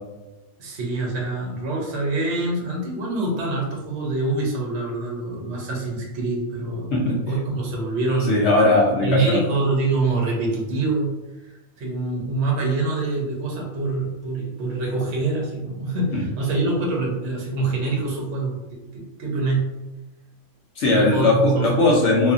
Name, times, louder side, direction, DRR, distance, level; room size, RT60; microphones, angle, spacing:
voice 1, 0.6-8.4 9.0-11.1 11.4-19.7 20.9-21.7, right 3 dB, 60° right, -2 dB, 0.9 m, -25 dB
voice 2, 8.3-9.4 16.1-16.2 20.8-22.3, left 2 dB, 65° left, -3 dB, 0.8 m, -18 dB
2.7 x 2.4 x 2.4 m, 1.0 s
omnidirectional pair, 1.4 m